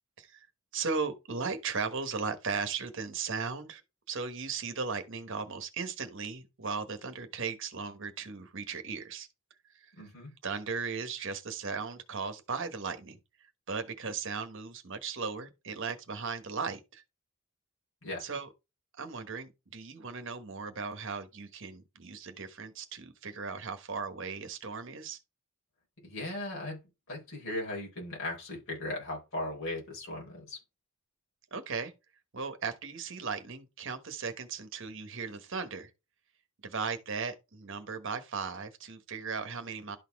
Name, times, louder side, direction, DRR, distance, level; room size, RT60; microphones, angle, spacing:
voice 1, 0.7-3.8 4.1-9.3 9.7-10.1 10.4-13.2 13.7-17.0 18.2-18.5 19.0-25.2 31.5-31.9 32.3-35.9 36.6-40.0, right 5 dB, 60° right, 1.2 m, -37 dB
voice 2, 10.0-10.3 18.0-18.2 26.0-26.8 27.1-30.6, left 1 dB, 65° left, 4.1 m, -37 dB
12.0 x 4.2 x 3.5 m
head